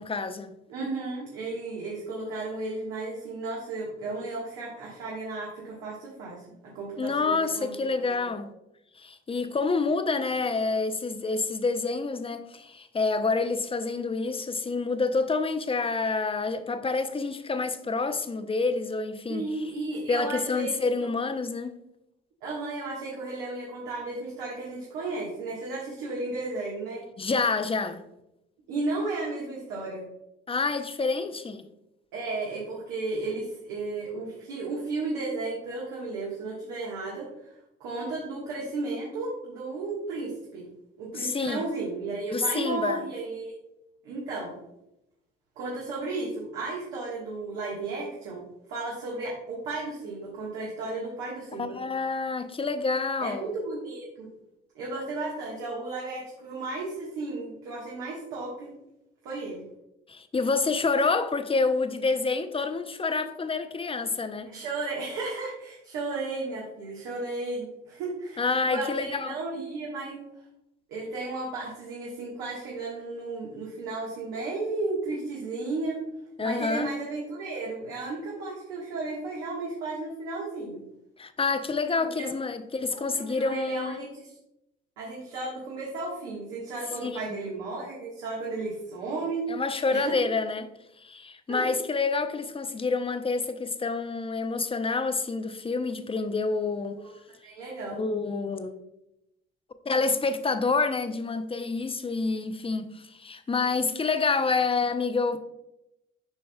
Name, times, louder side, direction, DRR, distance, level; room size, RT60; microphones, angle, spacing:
voice 1, 0.0-0.5 7.0-8.5 9.0-19.5 20.1-21.8 27.2-28.0 30.5-31.7 41.1-41.7 42.3-43.0 51.6-53.5 60.1-64.5 68.4-69.4 76.4-76.9 81.2-84.0 87.0-87.5 89.5-90.7 91.0-97.0 97.9-98.8 99.9-105.4, left 4 dB, 20° left, 0.6 m, -28 dB
voice 2, 0.7-7.7 8.0-8.3 19.3-21.1 22.4-27.0 28.7-30.0 32.1-40.7 41.0-43.5 44.0-44.5 45.6-48.4 48.7-51.8 53.2-54.3 54.7-58.7 59.2-59.6 64.4-70.2 70.9-76.0 76.4-80.8 82.2-82.3 82.9-84.3 85.0-89.4 89.9-90.1 91.5-91.7 97.0-97.1 97.4-98.0, right 3 dB, 75° right, 1.5 m, -34 dB
7.9 x 5.2 x 2.3 m
hypercardioid pair, 45°, 30 cm